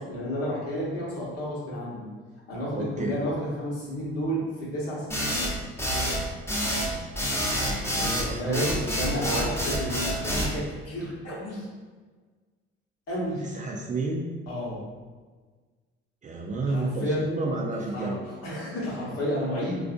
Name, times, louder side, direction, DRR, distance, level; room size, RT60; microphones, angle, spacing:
voice 1, 0.0-2.1 2.5-5.3 7.9-11.7 13.1-13.4 14.5-14.8 16.7-17.2 17.9-19.8, equal, 55° left, -5 dB, 1.2 m, -31 dB
voice 2, 2.8-3.2 7.2-9.9 13.4-14.3 16.2-18.2, right 2 dB, 25° right, 0 dB, 0.4 m, -32 dB
sound 1, 5.1-10.5, equal, 10° left, 0.9 m, -27 dB
3.2 x 2.6 x 2.5 m, 1.4 s
hypercardioid pair, 55°, 29 cm